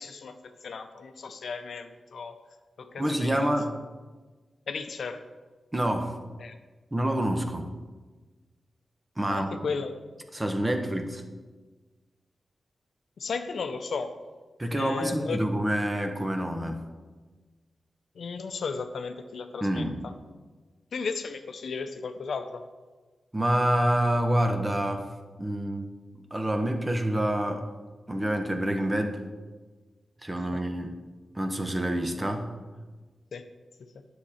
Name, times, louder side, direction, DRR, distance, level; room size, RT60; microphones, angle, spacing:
voice 1, 0.0-2.4 2.8-3.5 4.7-5.2 6.4-6.5 9.3-10.2 13.2-14.2 14.7-15.4 18.2-19.9 20.9-22.6 30.4-30.5 33.3-33.5 33.8-33.9, left 5 dB, 75° left, 8 dB, 0.6 m, -35 dB
voice 2, 3.0-3.7 5.7-6.2 6.9-7.7 9.2-9.5 10.3-11.2 14.6-16.8 19.6-20.0 23.3-25.1 25.4-25.9 26.3-27.7 28.1-29.2 30.2-31.0 31.3-32.5, right 1 dB, 20° right, 5 dB, 1.1 m, -27 dB
9.7 x 6.7 x 4.3 m, 1.3 s
cardioid pair, 70°, 0 cm